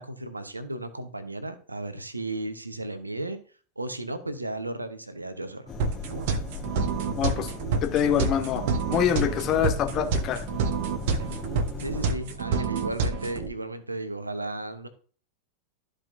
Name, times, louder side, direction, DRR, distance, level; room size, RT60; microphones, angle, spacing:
voice 1, 0.0-3.4 3.8-5.7 11.8-14.9, right 2 dB, 80° right, 10 dB, 1.0 m, -34 dB
sound 1, 5.7-12.1, left 3 dB, 15° left, 2.2 m, -38 dB
sound 2, 5.8-13.5, right 4 dB, 50° right, 1.1 m, -28 dB
voice 2, 7.2-7.5 7.8-10.4, left 9 dB, 35° left, 6 dB, 1.2 m, -25 dB
13.5 x 5.0 x 2.7 m, 0.41 s
figure-of-eight pair, 90°, 0 cm